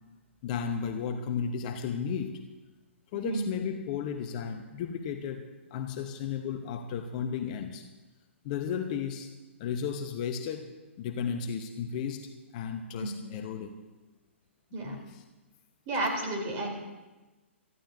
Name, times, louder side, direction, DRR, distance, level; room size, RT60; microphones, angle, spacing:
voice 1, 0.4-2.4 3.1-7.8 8.4-9.3 9.6-13.8 14.8-15.2, left 7 dB, 35° left, 6 dB, 1.0 m, -34 dB
voice 2, 15.9-16.7, right 2 dB, 30° right, 0 dB, 3.7 m, -31 dB
23.0 x 14.0 x 2.8 m, 1.2 s
figure-of-eight pair, 120°, 7 cm